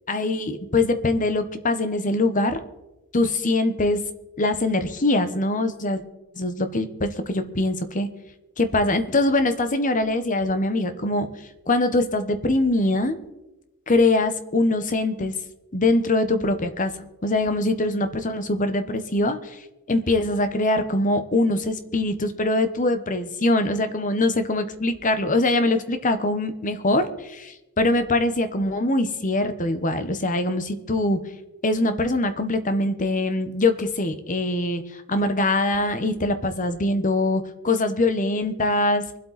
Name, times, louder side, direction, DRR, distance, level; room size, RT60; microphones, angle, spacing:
voice 1, 0.1-2.6 3.1-4.0 4.4-6.0 6.3-8.1 8.6-11.3 11.7-13.2 13.9-15.3 15.7-16.9 17.2-19.6 19.9-31.2 31.6-39.2, left 2 dB, 35° left, 9 dB, 1.1 m, -23 dB
24.5 x 8.2 x 4.2 m, 0.98 s
head